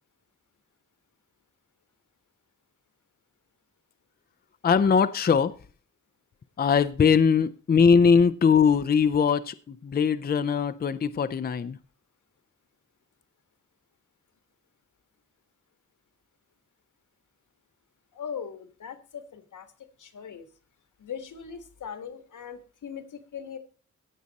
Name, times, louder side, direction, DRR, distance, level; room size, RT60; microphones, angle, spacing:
voice 1, 4.6-5.5 6.6-11.8, left 6 dB, 35° left, 13 dB, 0.5 m, -21 dB
voice 2, 18.1-19.7 20.0-20.5 21.0-23.6, left 7 dB, 85° left, 9 dB, 1.6 m, -40 dB
16.5 x 6.4 x 4.1 m, 0.38 s
wide cardioid pair, 160°, 30 cm